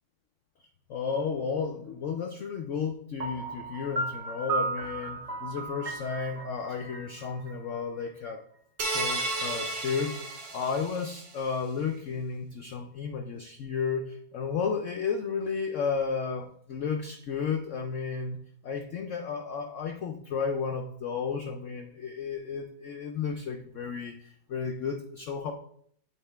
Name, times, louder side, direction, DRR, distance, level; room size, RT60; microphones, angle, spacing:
voice 1, 0.6-8.4 8.9-18.4 18.6-25.5, left 5 dB, 75° left, 4 dB, 0.7 m, -33 dB
Piano, 3.2-8.0, right 3 dB, 45° right, 0.5 m, -35 dB
sound 1, 8.8-11.3, right 2 dB, 75° right, 1.7 m, -33 dB
8.5 x 4.2 x 3.4 m, 0.64 s
omnidirectional pair, 1.9 m